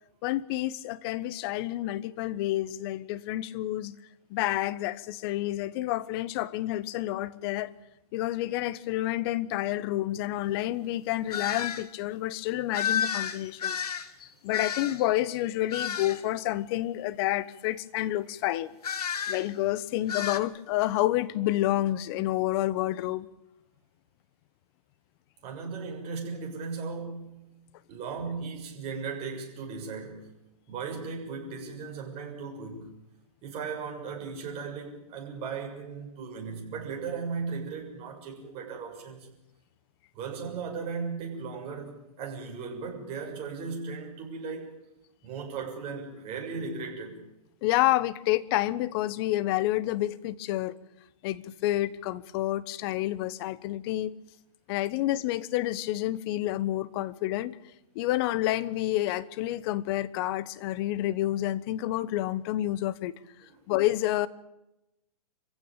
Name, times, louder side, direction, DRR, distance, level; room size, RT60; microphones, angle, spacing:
voice 1, 0.2-3.9 4.3-7.7 8.1-13.8 14.4-18.7 19.3-23.3 47.6-50.8 51.2-54.2 54.7-57.6 57.9-63.1 63.7-64.3, left 15 dB, 40° left, 17 dB, 1.1 m, -29 dB
sound 1, 11.3-11.8 12.7-15.1 15.7-16.2 18.8-19.5 20.1-20.4, left 7 dB, 75° left, 1.8 m, -31 dB
voice 2, 25.4-27.4 27.9-30.4 30.7-32.9 33.4-39.3 40.1-44.8 45.2-47.2, right 5 dB, 30° right, 1 dB, 6.7 m, -37 dB
26.0 x 16.0 x 9.0 m, 0.91 s
hypercardioid pair, 135°, 20 cm